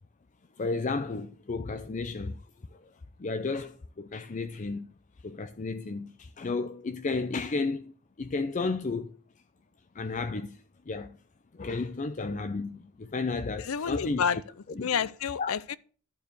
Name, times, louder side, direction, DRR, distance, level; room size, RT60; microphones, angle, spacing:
voice 1, 0.6-2.4 2.7-2.8 3.2-4.9 5.2-7.9 8.2-9.2 9.9-10.6 10.9-11.2 11.5-14.4 14.8-14.9 15.4-15.5, left 3 dB, 35° left, 0.5 m, -33 dB
voice 2, 13.6-14.4 14.8-15.8, left 7 dB, 90° left, 0.5 m, -29 dB
12.0 x 4.7 x 6.7 m
head